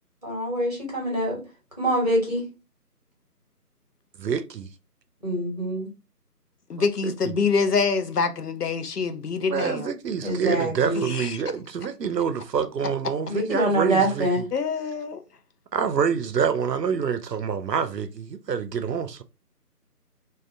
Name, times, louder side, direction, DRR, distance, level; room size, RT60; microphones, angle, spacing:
voice 1, 0.2-1.4 1.8-2.4 5.2-5.9 10.2-11.1 13.3-14.4, right 1 dB, 25° right, 1.1 m, -25 dB
voice 2, 4.2-4.7 7.0-7.3 9.5-14.4 15.7-19.2, right 6 dB, 85° right, 0.6 m, -27 dB
voice 3, 6.7-9.9 11.0-11.4 14.5-15.2, left 5 dB, 75° left, 0.7 m, -25 dB
2.5 x 2.5 x 3.2 m
figure-of-eight pair, 160°, 48 cm